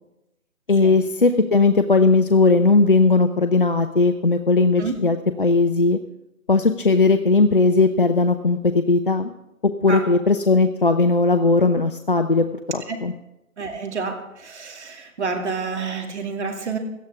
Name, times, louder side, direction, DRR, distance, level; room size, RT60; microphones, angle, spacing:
voice 1, 0.7-6.0 6.5-9.3 9.6-12.5 12.7-13.1, left 3 dB, 40° left, 8 dB, 0.5 m, -18 dB
voice 2, 13.6-16.8, right 4 dB, 50° right, 3 dB, 2.5 m, -29 dB
17.5 x 13.0 x 3.5 m, 0.93 s
figure-of-eight pair, 150°, 43 cm